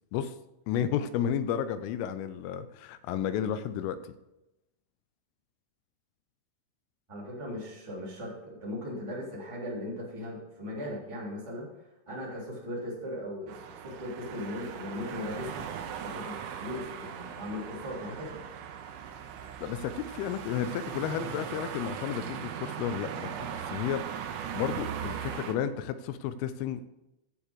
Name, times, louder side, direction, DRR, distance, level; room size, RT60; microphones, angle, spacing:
voice 1, 0.7-4.0 19.6-24.0 24.5-26.9, left 9 dB, 90° left, 12 dB, 3.2 m, -32 dB
voice 2, 7.1-11.7 12.1-13.5 13.8-15.6 16.0-18.3, left 1 dB, 10° right, -6 dB, 2.5 m, -38 dB
sound 1, 13.5-25.5, right 8 dB, 85° right, 3.4 m, -39 dB
9.2 x 7.3 x 6.6 m, 0.93 s
omnidirectional pair, 5.6 m